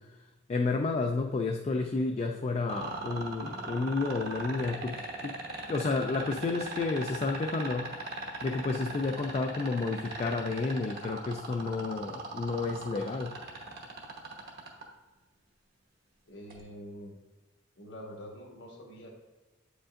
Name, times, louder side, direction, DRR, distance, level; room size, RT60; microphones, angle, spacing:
voice 1, 0.5-5.4 5.7-8.0 8.4-13.4, left 3 dB, 35° left, 3 dB, 0.3 m, -31 dB
sound 1, 2.7-14.8 16.5-16.6, right 3 dB, 55° right, 1.0 m, -38 dB
voice 2, 16.3-17.1 17.8-19.1, equal, 65° left, 0 dB, 1.3 m, -45 dB
7.9 x 5.1 x 2.5 m, 1.2 s
head